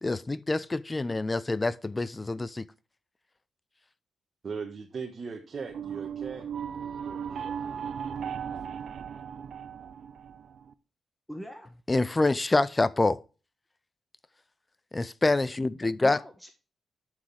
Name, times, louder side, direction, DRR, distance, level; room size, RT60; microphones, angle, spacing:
voice 1, 0.0-2.7 11.9-13.2 14.9-16.2, left 2 dB, 20° left, 0.5 m, -26 dB
voice 2, 4.4-6.5, right 5 dB, 45° right, 1.3 m, -38 dB
sound 1, 5.7-10.7, right 7 dB, 75° right, 0.7 m, -37 dB
voice 3, 6.9-7.5 11.3-11.7 16.0-16.5, equal, 5° left, 1.3 m, -44 dB
11.5 x 6.3 x 3.4 m
cardioid pair, 115°, 0 cm